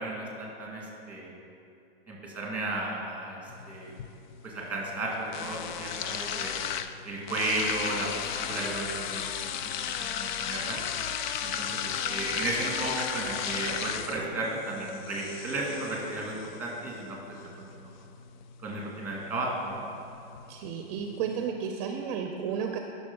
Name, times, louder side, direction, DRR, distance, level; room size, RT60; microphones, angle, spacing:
voice 1, 0.0-1.3 2.1-3.4 3.7-3.9 4.4-6.6 7.1-9.3 9.6-10.8 11.4-17.9 18.6-19.9, right 2 dB, 5° right, -3 dB, 2.0 m, -34 dB
sound 1, 3.5-21.5, left 8 dB, 50° left, 0.5 m, -36 dB
voice 2, 20.5-22.8, right 7 dB, 40° right, 4 dB, 0.7 m, -32 dB
11.5 x 6.3 x 5.4 m, 2.7 s
supercardioid pair, 160°, 31 cm